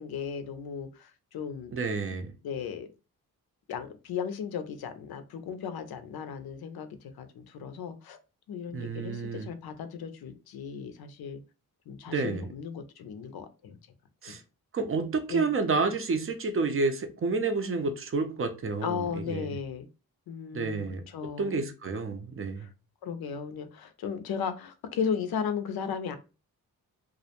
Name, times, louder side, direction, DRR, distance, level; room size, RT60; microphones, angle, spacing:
voice 1, 0.0-1.7 2.4-2.9 3.7-8.2 8.5-11.4 11.9-13.8 14.3-14.4 15.3-15.5 18.8-19.9 20.3-21.6 22.6-22.7 23.0-26.2, left 7 dB, 80° left, 0.5 m, -36 dB
voice 2, 1.7-2.3 8.7-9.5 12.1-12.5 14.2-14.4 14.7-19.5 20.5-21.0 21.4-22.7, right 4 dB, 35° right, 0.4 m, -30 dB
2.4 x 2.1 x 2.8 m
cardioid pair, 90°, 37 cm